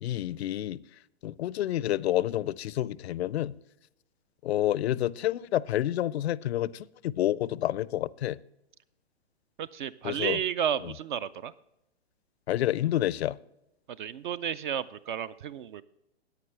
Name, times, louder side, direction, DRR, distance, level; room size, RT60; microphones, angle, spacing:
voice 1, 0.0-0.8 1.2-3.6 4.4-8.4 10.0-10.4 10.8-10.9 12.5-13.4, left 13 dB, 70° left, 21 dB, 0.5 m, -29 dB
voice 2, 9.6-11.5 14.0-15.8, right 9 dB, 50° right, 17 dB, 0.5 m, -32 dB
14.5 x 9.3 x 3.3 m, 0.87 s
hypercardioid pair, 125°, 33 cm